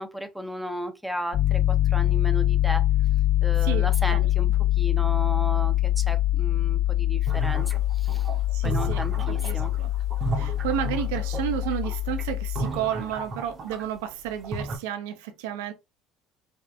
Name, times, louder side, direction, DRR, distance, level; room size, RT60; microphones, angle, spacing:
voice 1, 0.0-2.9 3.4-4.5 4.8-8.3 8.6-9.7, right 1 dB, 5° right, 0.6 m, -34 dB
Piano, 1.3-12.6, left 14 dB, 55° left, 0.9 m, -24 dB
voice 2, 3.6-4.3 8.5-9.0 9.3-9.9 10.4-15.7, right 10 dB, 80° right, 0.5 m, -32 dB
sound 1, 7.3-14.0 14.3-14.8, right 3 dB, 45° right, 0.7 m, -34 dB
3.4 x 2.1 x 2.4 m
hypercardioid pair, 70°, 0 cm